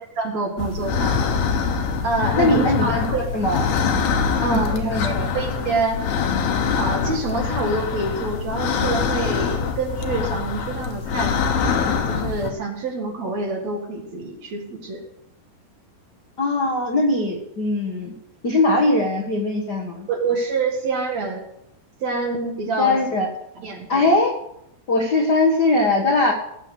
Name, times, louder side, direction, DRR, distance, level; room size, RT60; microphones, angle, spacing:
voice 1, 0.2-1.2 2.0-3.3 4.4-6.0 6.8-11.6 12.1-15.0 20.1-21.5 22.0-23.0 23.6-24.1, right 3 dB, 50° right, 2 dB, 2.6 m, -26 dB
sound 1, 0.6-12.5, left 6 dB, 75° left, 3.2 m, -24 dB
voice 2, 2.4-3.0 3.3-3.6 4.4-5.3 16.4-18.1 18.4-20.1 22.8-23.3 23.9-24.3 24.9-26.3, left 2 dB, 55° left, 0 dB, 1.1 m, -20 dB
17.5 x 7.6 x 6.4 m, 0.79 s
omnidirectional pair, 4.6 m